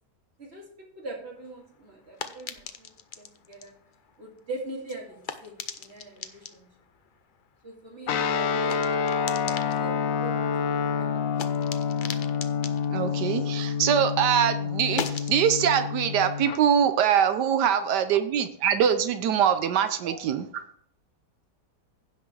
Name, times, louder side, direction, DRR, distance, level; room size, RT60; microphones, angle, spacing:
voice 1, 1.0-2.9 3.2-3.7 4.2-6.7 7.6-8.8 9.2-11.6 17.4-18.0 20.0-20.2, right 2 dB, 35° right, -1 dB, 2.6 m, -42 dB
sound 1, 1.4-14.1 14.4-17.7, left 6 dB, 80° left, 0.4 m, -42 dB
Guitar, 8.1-16.6, left 6 dB, 65° left, 0.9 m, -28 dB
voice 2, 12.9-20.5, right 8 dB, 80° right, 10 dB, 1.2 m, -23 dB
16.0 x 5.8 x 3.2 m, 0.64 s
omnidirectional pair, 1.8 m